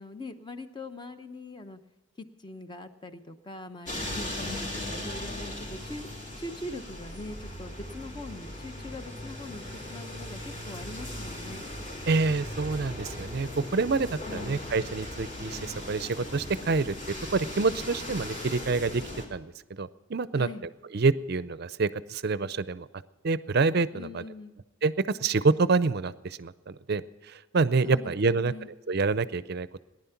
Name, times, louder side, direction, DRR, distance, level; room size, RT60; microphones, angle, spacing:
voice 1, 0.0-1.8 2.2-6.1 6.4-11.6 14.2-14.6 20.4-20.6 23.9-24.5 27.8-28.7, left 2 dB, 20° left, 8 dB, 0.8 m, -42 dB
sound 1, 3.8-19.3, left 1 dB, 40° left, 3.3 m, -38 dB
voice 2, 12.1-16.9 17.3-19.0 19.3-19.5 19.8-20.5 20.9-22.9 23.2-24.2 24.8-29.7, right 4 dB, 50° right, 16 dB, 0.5 m, -27 dB
18.5 x 11.0 x 5.8 m, 1.2 s
head